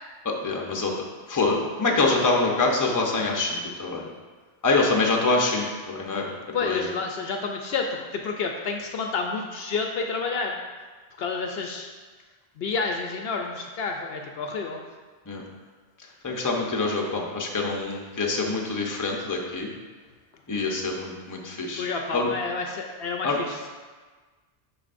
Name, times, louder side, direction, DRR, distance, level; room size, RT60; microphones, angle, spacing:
voice 1, 0.2-0.9 1.3-4.0 4.6-6.3 6.6-6.9 15.3-15.4 16.2-19.7 20.5-22.3 23.2-23.4, left 3 dB, 20° left, 0 dB, 0.7 m, -25 dB
voice 2, 6.5-10.6 11.2-11.9 12.6-14.8 21.8-23.7, left 4 dB, 70° left, 2 dB, 0.8 m, -29 dB
11.0 x 4.2 x 2.5 m, 1.4 s
omnidirectional pair, 1.1 m